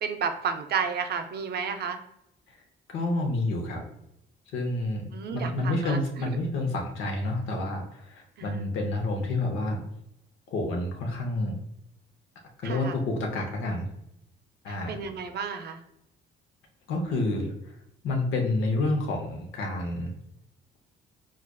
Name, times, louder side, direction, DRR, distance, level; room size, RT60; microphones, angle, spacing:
voice 1, 0.0-2.0 5.1-6.0 8.4-8.7 12.6-13.0 14.7-15.8, right 6 dB, 55° right, 7 dB, 0.5 m, -32 dB
voice 2, 2.9-3.8 4.5-5.1 5.3-9.8 10.5-11.6 12.6-13.9 14.6-15.0 16.9-17.5 18.0-20.1, left 2 dB, 85° left, 1 dB, 0.8 m, -29 dB
4.7 x 2.4 x 2.2 m, 0.80 s
cardioid pair, 90°, 20 cm